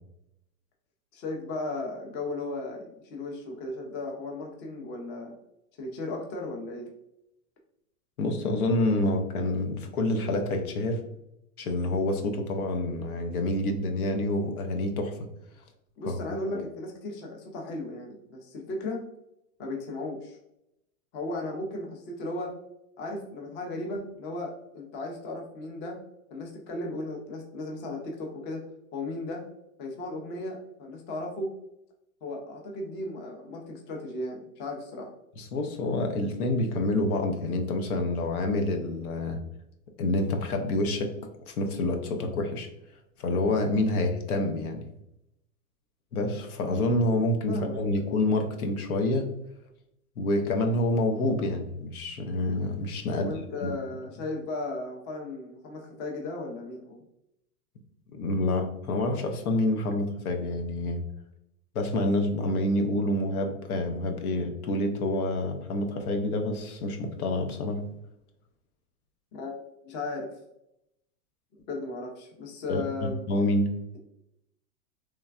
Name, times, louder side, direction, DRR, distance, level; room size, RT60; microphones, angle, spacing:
voice 1, 1.1-5.3 5.8-6.9 16.0-19.0 19.6-20.4 21.1-22.5 23.0-26.0 26.3-28.6 28.9-29.4 29.8-31.6 32.2-35.1 47.5-47.8 53.1-57.0 69.3-70.3 71.7-73.2, left 2 dB, 25° left, 1 dB, 0.5 m, -36 dB
voice 2, 8.2-11.0 11.6-15.2 16.1-16.2 35.4-39.4 40.0-41.1 41.5-42.7 43.2-44.9 46.1-49.3 50.2-53.3 53.6-53.7 58.1-61.0 61.7-67.8 72.7-72.8 73.3-73.7, left 1 dB, 90° left, 4 dB, 0.7 m, -27 dB
3.2 x 2.2 x 2.3 m, 0.81 s
hypercardioid pair, 130°, 42 cm